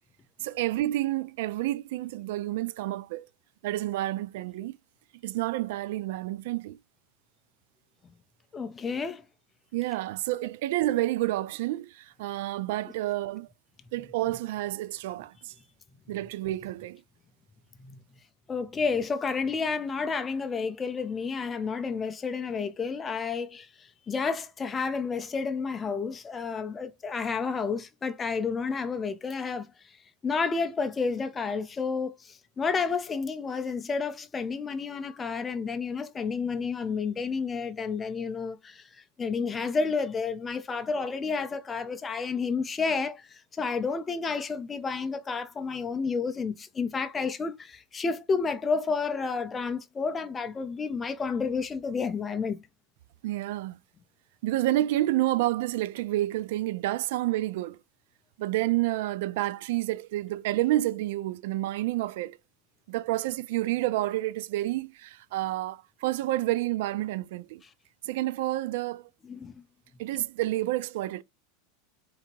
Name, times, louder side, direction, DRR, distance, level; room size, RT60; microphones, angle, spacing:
voice 1, 0.4-3.3 3.6-4.8 5.2-6.8 9.7-13.5 13.9-15.5 16.1-17.0 53.2-53.8 54.4-57.8 58.4-62.4 62.9-67.6 68.0-69.1 70.0-71.2, right 16 dB, 60° right, 0.4 m, -29 dB
voice 2, 8.5-9.2 17.8-18.0 18.5-29.7 30.2-38.9 39.2-52.6 69.3-69.5, left 5 dB, 15° left, 0.5 m, -30 dB
3.8 x 2.8 x 4.4 m
supercardioid pair, 165°, 0 cm